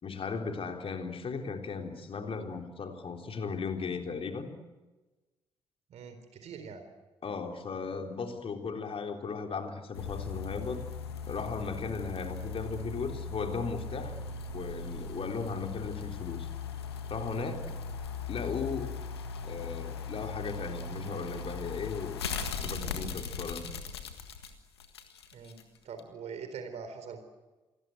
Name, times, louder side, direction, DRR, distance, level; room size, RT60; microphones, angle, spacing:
voice 1, 0.0-4.5 7.2-10.9 11.3-14.2 14.5-16.5 17.1-17.8 18.3-19.0 19.4-22.2 22.6-23.7, left 4 dB, 45° left, 4 dB, 3.7 m, -36 dB
voice 2, 5.9-6.9 25.3-27.2, right 6 dB, 55° right, 8 dB, 4.0 m, -43 dB
sound 1, 9.9-25.6 26.0-26.1, left 5 dB, 85° left, 1.6 m, -39 dB
28.0 x 21.0 x 8.0 m, 1.2 s
figure-of-eight pair, 40°, 13 cm